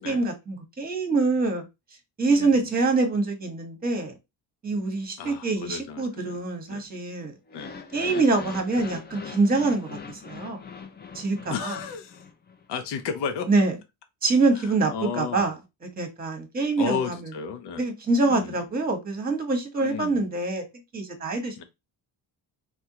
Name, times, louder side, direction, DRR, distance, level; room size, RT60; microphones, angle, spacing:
voice 1, 0.0-1.6 2.2-4.1 4.6-7.3 7.9-10.6 11.1-11.7 13.5-13.7 14.2-17.3 17.8-20.6 20.9-21.6, right 3 dB, 20° right, 1.0 m, -25 dB
voice 2, 2.3-2.7 5.2-6.4 6.7-6.9 7.5-7.7 8.1-8.3 11.5-12.2 12.7-13.5 14.6-15.5 16.8-17.8 18.2-18.6 19.8-20.2 21.6-21.7, left 6 dB, 60° left, 0.7 m, -33 dB
sound 1, 7.5-12.6, left 5 dB, 20° left, 0.5 m, -41 dB
3.4 x 2.2 x 2.8 m
cardioid pair, 80°, 46 cm